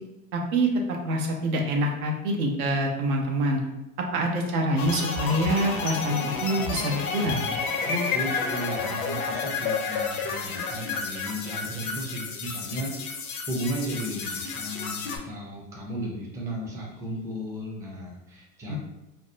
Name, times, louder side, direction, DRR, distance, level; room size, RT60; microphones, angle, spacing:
voice 1, 0.3-3.6 4.0-7.4 18.7-18.8, right 1 dB, 80° right, 1 dB, 0.7 m, -26 dB
sound 1, 4.8-15.2, left 5 dB, 85° left, 0.6 m, -31 dB
voice 2, 7.9-18.7, equal, 10° right, -3 dB, 0.4 m, -34 dB
2.6 x 2.1 x 2.5 m, 0.97 s
hypercardioid pair, 100°, 43 cm